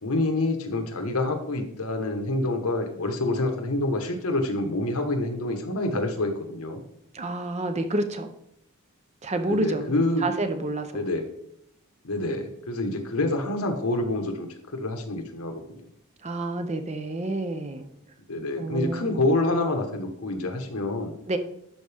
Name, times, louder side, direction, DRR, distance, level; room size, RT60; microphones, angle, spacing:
voice 1, 0.0-6.8 9.5-10.3 10.9-11.3 12.0-14.5 14.7-15.8 18.3-21.1, left 2 dB, 80° left, 5 dB, 1.2 m, -27 dB
voice 2, 7.1-8.3 9.2-9.9 10.2-11.0 16.2-17.9 18.6-19.2 21.3-21.4, right 2 dB, 30° right, 8 dB, 0.6 m, -29 dB
12.0 x 4.9 x 3.4 m, 0.75 s
head